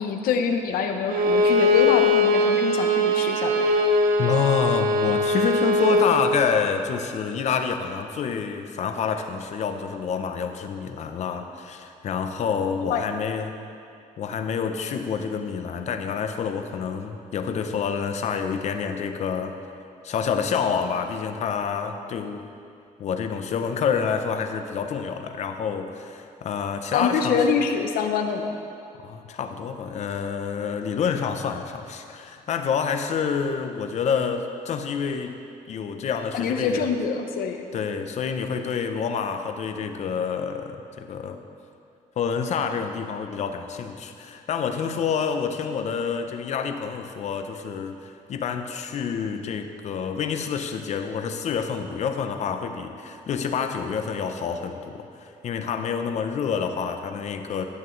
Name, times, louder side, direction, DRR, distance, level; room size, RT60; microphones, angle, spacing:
voice 1, 0.0-3.6 12.9-13.0 26.9-28.6 36.3-37.6, left 6 dB, 90° left, 5 dB, 0.9 m, -25 dB
Bowed string instrument, 1.1-6.1, left 1 dB, 80° right, 0.8 m, -21 dB
voice 2, 4.2-13.6 14.2-19.5 20.0-22.4 23.0-27.6 29.0-35.4 35.7-36.9 37.7-41.4 42.2-57.6, left 6 dB, 50° left, 6 dB, 0.7 m, -28 dB
12.5 x 10.0 x 3.2 m, 2.5 s
cardioid pair, 145°, 15 cm